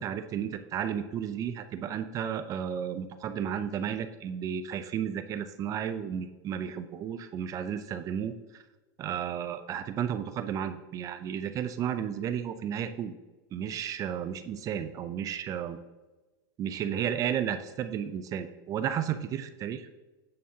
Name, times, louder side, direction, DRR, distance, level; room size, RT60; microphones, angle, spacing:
voice 1, 0.0-8.6 9.0-13.1 13.5-15.8 16.6-19.9, right 9 dB, 30° right, 10 dB, 0.5 m, -33 dB
9.1 x 8.7 x 2.8 m, 1.1 s
supercardioid pair, 145°, 11 cm